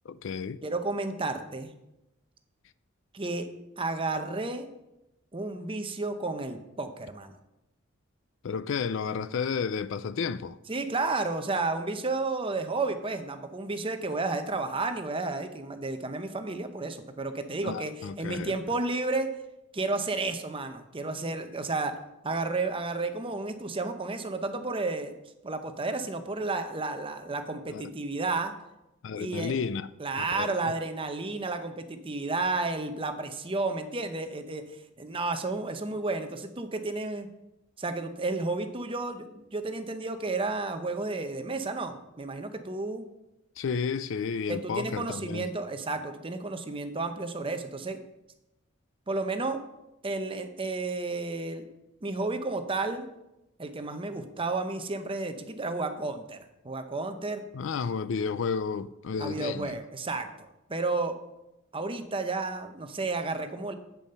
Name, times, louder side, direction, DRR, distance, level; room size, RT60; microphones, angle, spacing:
voice 1, 0.1-0.6 8.4-10.6 17.6-18.5 27.7-27.9 29.0-29.9 30.2-30.7 43.6-45.5 57.5-59.7, left 5 dB, 60° left, 0.4 m, -32 dB
voice 2, 0.6-1.7 3.1-3.5 3.8-4.7 5.3-7.3 10.7-19.3 19.7-21.9 22.2-25.1 25.4-28.5 29.2-29.5 30.0-34.6 35.0-37.3 37.8-43.1 44.5-48.0 49.1-49.6 50.0-51.7 52.0-53.1 53.6-57.4 59.2-61.2 61.7-63.7, right 3 dB, 25° right, 0.7 m, -32 dB
8.5 x 7.1 x 5.5 m
head